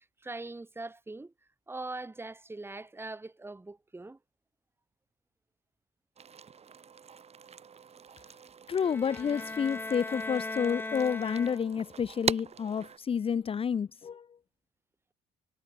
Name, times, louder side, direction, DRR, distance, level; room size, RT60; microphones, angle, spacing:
voice 1, 0.0-1.3 1.7-4.2, right 2 dB, 15° right, 3.8 m, -42 dB
sound 1, 6.2-13.0, right 6 dB, 40° right, 7.8 m, -41 dB
voice 2, 8.7-14.3, left 7 dB, 35° left, 0.9 m, -30 dB
sound 2, 8.8-12.0, left 2 dB, 10° left, 2.6 m, -39 dB
cardioid pair, 110°, 17 cm